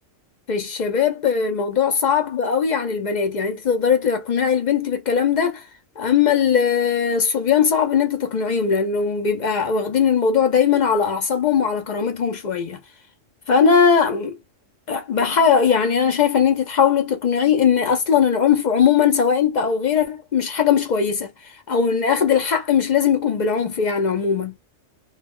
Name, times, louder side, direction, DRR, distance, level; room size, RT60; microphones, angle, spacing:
voice 1, 0.5-5.6 6.0-12.8 13.5-14.4 14.9-21.3 21.7-24.5, left 7 dB, 60° left, 0.4 m, -19 dB
2.2 x 2.1 x 3.4 m
omnidirectional pair, 1.3 m